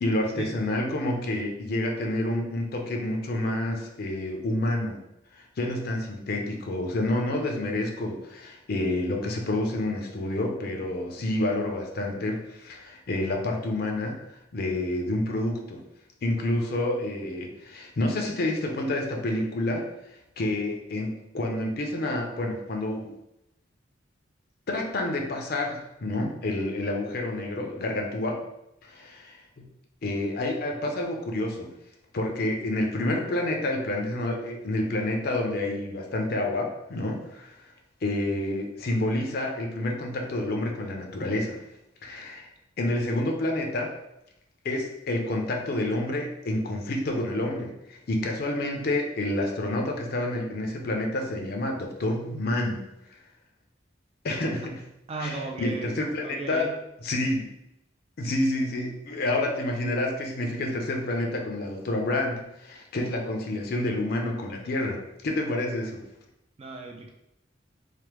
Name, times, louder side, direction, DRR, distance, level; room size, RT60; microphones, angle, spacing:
voice 1, 0.0-5.0 5.4-14.2 14.5-15.8 16.2-19.8 20.4-23.1 24.7-28.4 28.8-29.6 30.0-31.7 32.1-37.6 38.0-41.6 42.0-42.5 42.8-43.9 44.6-52.8 54.2-54.8 55.2-56.7 57.0-57.5 58.2-66.0, left 1 dB, 55° left, 2 dB, 0.5 m, -29 dB
voice 2, 55.1-55.9 56.2-56.7 66.6-67.1, right 3 dB, 30° right, 1 dB, 0.3 m, -35 dB
3.3 x 2.0 x 3.0 m, 0.86 s
head